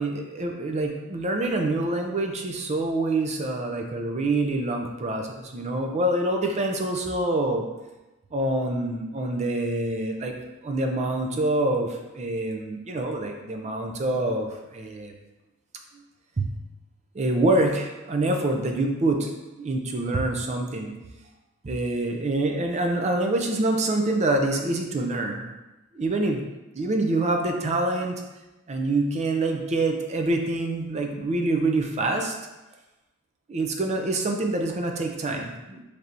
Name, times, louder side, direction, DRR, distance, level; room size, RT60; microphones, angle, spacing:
voice 1, 0.0-7.6 8.3-10.3 10.6-15.1 16.4-16.5 17.1-19.3 19.6-20.9 21.6-25.4 25.9-26.4 26.8-28.2 28.7-32.3 33.5-35.8, right 2 dB, 35° right, 3 dB, 0.4 m, -26 dB
4.2 x 3.4 x 2.5 m, 1.1 s
head